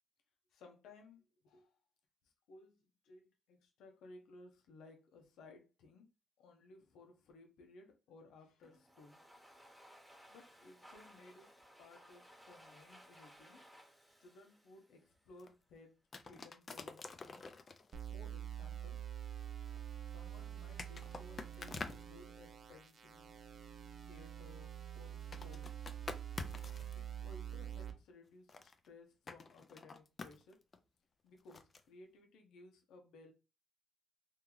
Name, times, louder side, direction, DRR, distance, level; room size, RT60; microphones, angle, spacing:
voice 1, 0.5-1.7 2.5-2.8 3.0-6.1 6.4-9.2 10.3-11.5 11.8-13.6 14.2-17.5 18.1-19.0 20.1-23.4 24.0-25.9 26.9-30.6 31.2-33.3, left 2 dB, 85° left, 0.8 m, -60 dB
Domestic sounds home sounds, 8.6-15.5, equal, 5° right, 1.0 m, -61 dB
sound 1, 15.4-15.5 16.1-18.1 19.7-19.8 20.8-22.1 25.3-27.0 28.5-28.9 29.3-30.8 31.5-31.8, left 4 dB, 35° left, 0.5 m, -47 dB
sound 2, 17.9-27.9, right 10 dB, 55° right, 0.6 m, -46 dB
3.0 x 2.7 x 3.8 m
cardioid pair, 90°, 0 cm